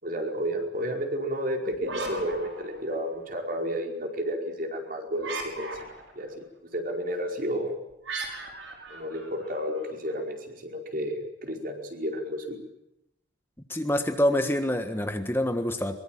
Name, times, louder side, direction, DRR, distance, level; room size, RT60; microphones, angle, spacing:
voice 1, 0.0-5.7 6.1-6.4 6.7-7.7 8.9-12.6, equal, 50° right, 2 dB, 5.0 m, -31 dB
sound 1, 1.7-3.3 5.2-6.2 8.0-9.9, right 3 dB, 85° right, 6.1 m, -37 dB
voice 2, 13.7-16.0, left 1 dB, 10° left, 7 dB, 1.5 m, -26 dB
23.0 x 23.0 x 9.1 m, 0.85 s
head